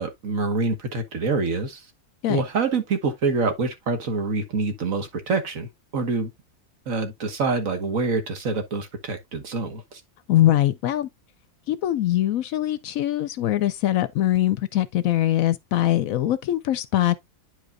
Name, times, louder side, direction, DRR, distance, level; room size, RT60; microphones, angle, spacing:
voice 1, 0.0-1.8 2.3-5.7 5.9-6.3 6.9-10.0, right 4 dB, 60° right, 1.6 m, -26 dB
voice 2, 10.3-11.1 11.7-17.2, left 13 dB, 70° left, 0.9 m, -22 dB
9.8 x 4.9 x 2.5 m
omnidirectional pair, 1.6 m